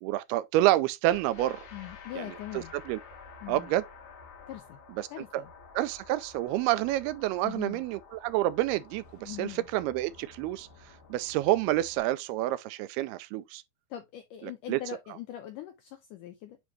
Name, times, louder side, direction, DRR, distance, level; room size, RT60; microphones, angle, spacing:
voice 1, 0.0-1.7 2.2-3.0 3.5-3.8 5.0-5.1 5.3-5.4 5.8-10.7 11.1-13.6 14.4-14.8, right 15 dB, 85° right, 2.5 m, -28 dB
sound 1, 1.1-12.0, left 5 dB, 55° left, 2.5 m, -51 dB
voice 2, 1.7-2.7 3.4-3.7 4.5-4.8 5.1-5.5 7.4-7.8 9.2-9.7 13.9-16.6, left 13 dB, 85° left, 1.8 m, -41 dB
9.0 x 3.4 x 3.1 m
omnidirectional pair, 4.5 m